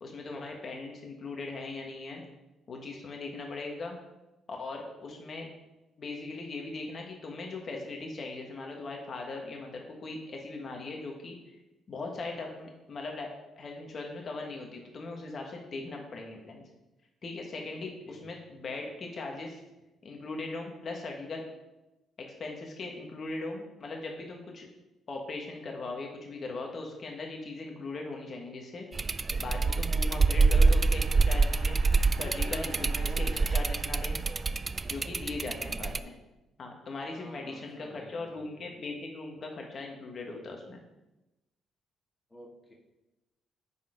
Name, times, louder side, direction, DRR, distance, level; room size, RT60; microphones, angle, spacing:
voice 1, 0.0-2.2 2.7-4.0 4.5-5.5 6.0-11.4 11.9-16.6 17.2-19.6 20.0-21.4 22.2-24.7 25.1-28.9 29.4-31.8 32.2-34.2 34.9-36.2 36.6-40.8, left 3 dB, 50° left, 1 dB, 1.5 m, -39 dB
voice 2, 17.7-18.2 32.7-33.1 34.8-35.2 37.2-38.7 42.3-42.7, left 1 dB, 20° left, -2 dB, 1.9 m, -53 dB
sound 1, 28.9-36.0, right 3 dB, 30° right, 0.3 m, -26 dB
sound 2, 29.2-35.4, right 4 dB, 90° right, 1.9 m, -50 dB
9.2 x 4.3 x 5.1 m, 0.98 s
cardioid pair, 90°, 0 cm